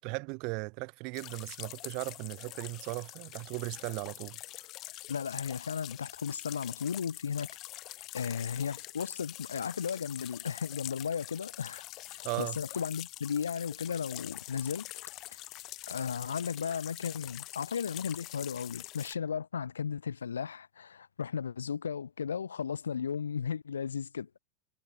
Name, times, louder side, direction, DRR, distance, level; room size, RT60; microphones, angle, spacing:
voice 1, 0.0-4.4 12.2-12.6, right 32 dB, 45° right, 2.9 m, -37 dB
sound 1, 1.1-19.1, left 17 dB, 35° left, 5.8 m, -45 dB
voice 2, 5.1-7.5 8.1-14.9 15.9-24.4, left 7 dB, 70° left, 6.0 m, -35 dB
figure-of-eight pair, 90°, 0 cm